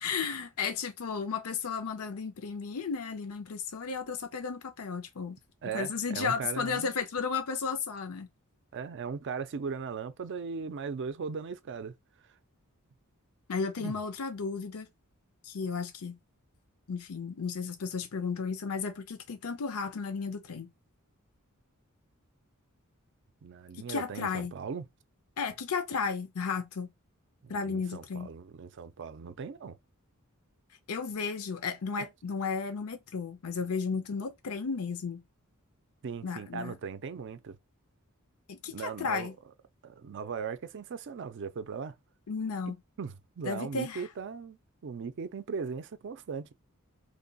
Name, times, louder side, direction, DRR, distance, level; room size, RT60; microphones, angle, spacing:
voice 1, 0.0-5.4 5.7-8.3 13.5-14.9 15.4-16.2 16.9-20.7 23.9-24.5 25.4-26.9 27.5-28.3 30.9-35.2 36.2-36.7 38.5-39.3 42.3-42.8 43.4-44.0, left 5 dB, 80° left, 0.6 m, -34 dB
voice 2, 5.6-6.9 8.7-11.9 13.8-14.0 23.4-24.8 27.4-29.8 32.0-32.1 36.0-37.6 38.7-39.3 39.8-42.0 42.7-46.5, right 5 dB, 55° right, 0.4 m, -38 dB
3.2 x 2.2 x 3.9 m
head